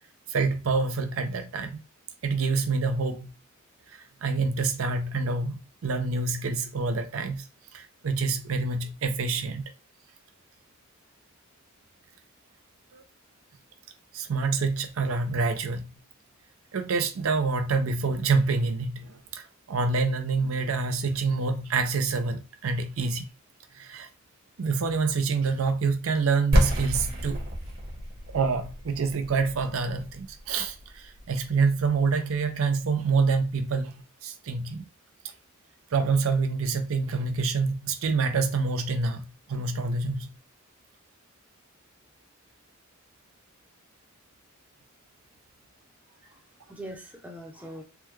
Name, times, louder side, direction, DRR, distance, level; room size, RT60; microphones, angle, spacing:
voice 1, 0.3-1.8 2.2-3.3 3.9-7.5 7.7-9.6 12.9-13.0 14.1-15.9 16.7-23.3 23.7-24.1 24.6-27.5 28.3-34.9 35.9-40.3, right 4 dB, 75° right, 0.5 m, -27 dB
sound 1, 26.5-32.3, equal, 50° right, 1.1 m, -30 dB
voice 2, 46.1-47.8, right 1 dB, 5° right, 0.6 m, -43 dB
3.4 x 2.2 x 3.1 m
head